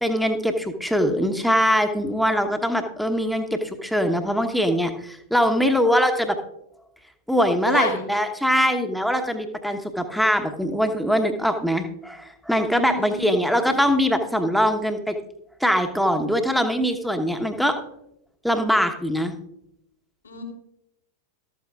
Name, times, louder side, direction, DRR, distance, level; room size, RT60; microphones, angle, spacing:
voice 1, 0.0-6.4 7.3-15.2 15.6-17.8 18.4-19.3, equal, ahead, 5 dB, 1.1 m, -22 dB
voice 2, 7.6-8.0 12.7-13.3 20.2-20.4, left 2 dB, 75° left, 1 dB, 2.5 m, -28 dB
13.0 x 12.5 x 2.4 m, 0.82 s
figure-of-eight pair, 90°, 0 cm